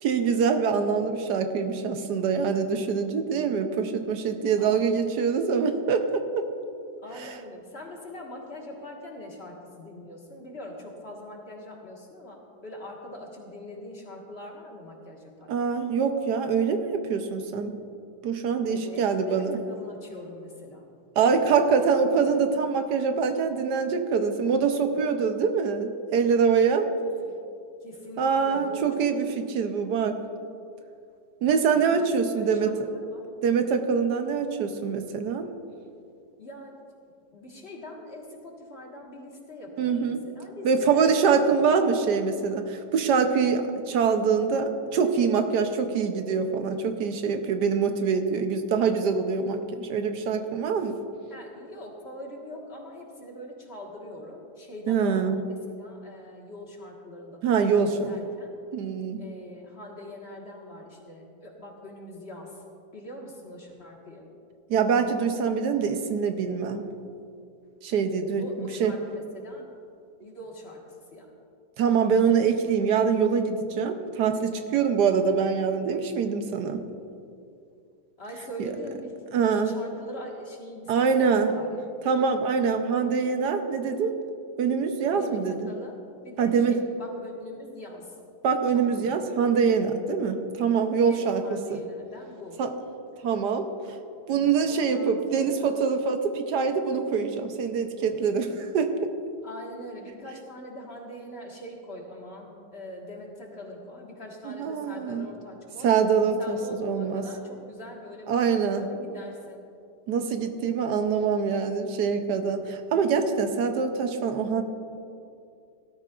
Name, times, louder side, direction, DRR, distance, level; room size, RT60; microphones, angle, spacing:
voice 1, 0.0-6.4 7.2-7.4 15.5-17.8 18.2-19.6 21.2-26.9 28.2-30.2 31.4-32.7 33.4-35.5 39.8-40.2 40.6-51.0 54.9-55.4 57.4-58.2 58.7-59.2 64.7-66.9 67.8-68.9 71.8-76.8 78.6-78.7 79.3-79.7 80.9-81.5 82.0-84.1 84.6-85.5 86.4-86.8 88.4-91.8 92.6-92.7 93.2-93.7 94.3-99.1 104.4-105.3 105.8-107.2 108.3-108.9 110.1-114.6, right 6 dB, 80° right, 6 dB, 1.4 m, -24 dB
voice 2, 4.6-5.3 7.0-15.8 18.7-20.9 27.2-27.4 27.8-28.9 32.0-33.2 36.4-36.8 37.3-42.0 51.3-58.5 59.2-62.6 62.9-64.3 68.4-69.6 70.2-71.3 78.2-81.8 85.1-86.0 86.2-88.2 88.7-89.2 91.1-92.6 94.6-95.7 99.4-105.9 106.4-109.7, left 1 dB, 40° left, -1 dB, 1.8 m, -42 dB
18.0 x 12.5 x 2.5 m, 2.5 s
omnidirectional pair, 1.8 m